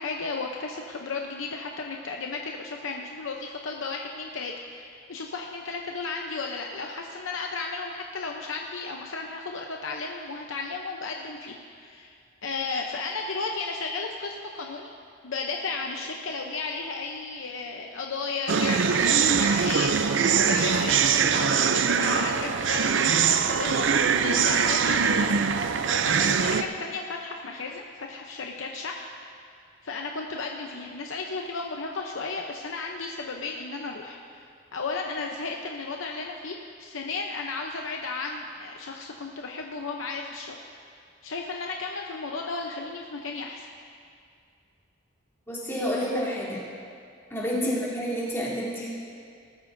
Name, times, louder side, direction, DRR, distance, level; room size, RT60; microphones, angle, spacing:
voice 1, 0.0-14.9 15.2-29.0 29.8-40.6 40.8-43.7 47.6-47.8, left 4 dB, 85° left, 1 dB, 0.8 m, -34 dB
sound 1, 18.5-26.6, right 6 dB, 65° right, 0.5 m, -23 dB
voice 2, 45.5-46.6 47.3-48.9, equal, 10° left, -9 dB, 3.3 m, -29 dB
20.0 x 13.5 x 2.7 m, 2.3 s
head